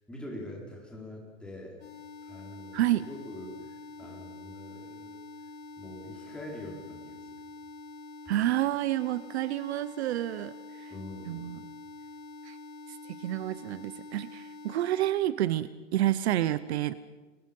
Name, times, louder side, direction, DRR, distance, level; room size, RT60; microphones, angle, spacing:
voice 1, 0.1-1.8 2.2-5.2 5.8-7.4 10.9-11.7, left 1 dB, ahead, -3 dB, 4.7 m, -44 dB
sound 1, 1.8-15.1, left 3 dB, 65° left, 6.5 m, -46 dB
voice 2, 2.7-3.1 8.3-10.9 11.3-11.6 12.4-12.6 12.9-16.9, right 14 dB, 55° right, 15 dB, 0.9 m, -29 dB
30.0 x 23.5 x 5.4 m, 1.3 s
supercardioid pair, 160°, 38 cm